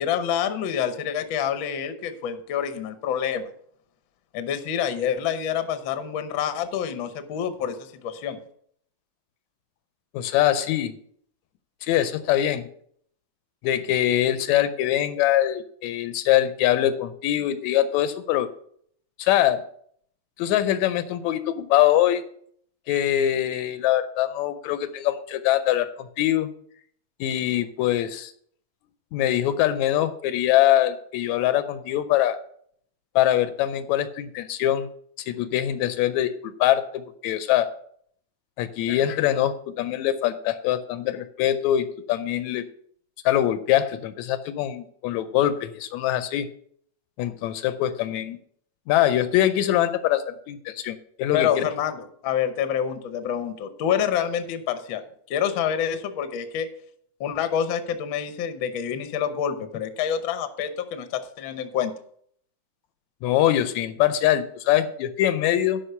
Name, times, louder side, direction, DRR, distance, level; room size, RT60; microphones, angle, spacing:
voice 1, 0.0-3.5 4.3-8.4 51.3-56.7 57.2-61.9, left 8 dB, 65° left, 9 dB, 1.3 m, -27 dB
voice 2, 10.1-10.9 11.8-12.7 13.6-18.5 19.2-19.6 20.4-22.2 22.9-26.5 27.2-28.3 29.1-32.4 33.2-34.9 35.3-37.7 38.6-42.6 43.3-46.5 47.2-48.4 48.9-51.7 63.2-65.8, left 12 dB, 80° left, 12 dB, 1.8 m, -23 dB
11.5 x 5.4 x 5.6 m, 0.64 s
omnidirectional pair, 3.4 m